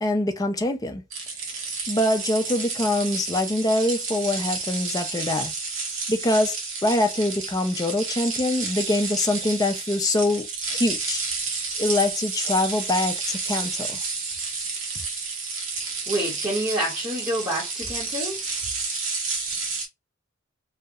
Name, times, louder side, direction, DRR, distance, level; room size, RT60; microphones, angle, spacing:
voice 1, 0.0-1.0 1.9-5.5 6.1-6.6 6.8-11.2 11.8-14.0, left 1 dB, 20° left, 0.4 m, -24 dB
sound 1, 1.1-19.9, right 4 dB, 75° right, 0.9 m, -31 dB
voice 2, 16.1-18.4, right 1 dB, 20° right, 0.9 m, -28 dB
2.7 x 2.1 x 2.2 m
head